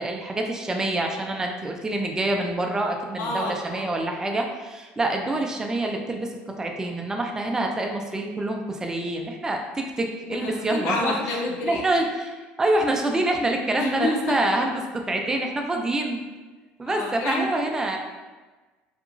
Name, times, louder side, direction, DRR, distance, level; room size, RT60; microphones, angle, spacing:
voice 1, 0.0-11.1 11.6-16.2 16.8-18.0, right 2 dB, 15° right, 2 dB, 0.3 m, -26 dB
voice 2, 3.2-4.0 10.3-11.9 13.8-14.4 16.8-17.5, left 2 dB, 75° left, 0 dB, 0.5 m, -29 dB
2.8 x 2.3 x 2.4 m, 1.3 s
cardioid pair, 110°, 4 cm